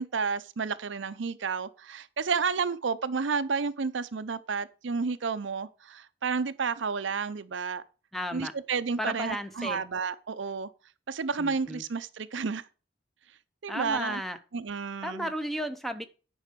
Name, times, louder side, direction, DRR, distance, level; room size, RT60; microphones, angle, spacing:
voice 1, 0.0-7.8 8.3-10.7 11.1-12.6 13.6-14.2 14.5-15.3, right 5 dB, 70° right, 0.6 m, -31 dB
voice 2, 8.1-8.5 9.0-9.8 11.4-11.8 13.7-14.4 15.0-16.0, equal, ahead, 0.7 m, -34 dB
9.9 x 5.6 x 5.1 m
head